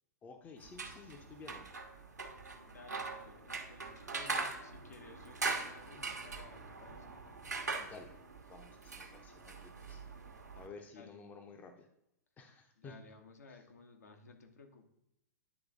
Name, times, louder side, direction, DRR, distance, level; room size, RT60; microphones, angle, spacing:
voice 1, 0.2-1.7 7.8-8.1 8.5-10.0 10.6-11.9 12.4-13.0 13.5-13.6, left 4 dB, 20° left, 5 dB, 0.7 m, -53 dB
sound 1, 0.6-10.7, right 4 dB, 75° right, 1.0 m, -42 dB
voice 2, 2.7-7.2 10.9-11.2 12.8-14.8, left 4 dB, 70° left, 3 dB, 1.0 m, -56 dB
9.7 x 3.3 x 3.6 m, 0.81 s
figure-of-eight pair, 105°, 9 cm